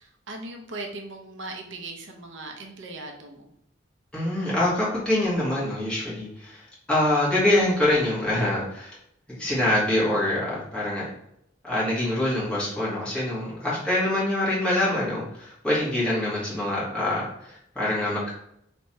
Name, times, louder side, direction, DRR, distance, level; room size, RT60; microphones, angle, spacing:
voice 1, 0.0-3.5 13.7-14.1, right 2 dB, 90° right, 2 dB, 0.8 m, -39 dB
voice 2, 4.1-9.0 9.3-11.1 11.6-18.3, left 1 dB, 5° left, -8 dB, 1.6 m, -25 dB
3.4 x 3.0 x 4.2 m, 0.75 s
head